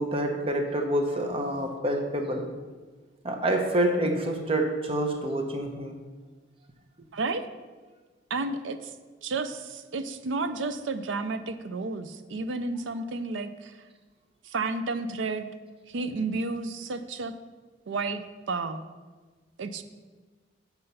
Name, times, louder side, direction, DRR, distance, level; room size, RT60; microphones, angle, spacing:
voice 1, 0.0-2.5 3.2-5.9, right 1 dB, 30° right, 4 dB, 0.8 m, -27 dB
voice 2, 8.3-8.9 9.2-13.8 14.4-15.5 15.9-17.3 17.9-18.8 19.6-19.8, right 3 dB, 80° right, 10 dB, 0.5 m, -31 dB
7.6 x 4.4 x 5.5 m, 1.3 s
head